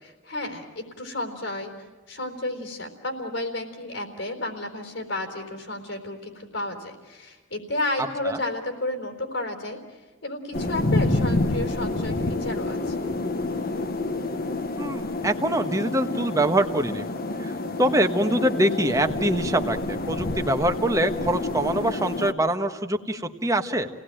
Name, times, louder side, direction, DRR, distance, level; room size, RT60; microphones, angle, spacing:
voice 1, 0.0-1.7 2.1-9.8 10.2-13.0, left 2 dB, 75° left, 2 dB, 4.1 m, -32 dB
sound 1, 10.5-22.3, left 2 dB, 50° left, 1.3 m, -28 dB
voice 2, 14.8-17.1 17.4-17.5 17.8-23.9, right 1 dB, 15° right, 6 dB, 1.3 m, -24 dB
30.0 x 18.5 x 9.0 m, 1.3 s
head